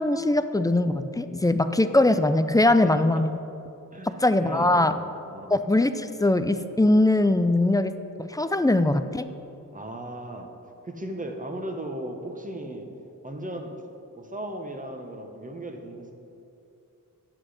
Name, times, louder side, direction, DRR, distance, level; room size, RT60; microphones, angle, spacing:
voice 1, 0.0-3.4 4.2-4.9 5.5-9.3, left 2 dB, 10° left, 10 dB, 0.4 m, -21 dB
voice 2, 2.7-3.2 3.9-5.0 5.3-5.5 9.7-10.5 10.8-12.9 13.2-13.7 14.2-16.2, right 1 dB, 25° right, 3 dB, 1.2 m, -36 dB
10.5 x 7.9 x 5.1 m, 2.8 s
cardioid pair, 75°, 35 cm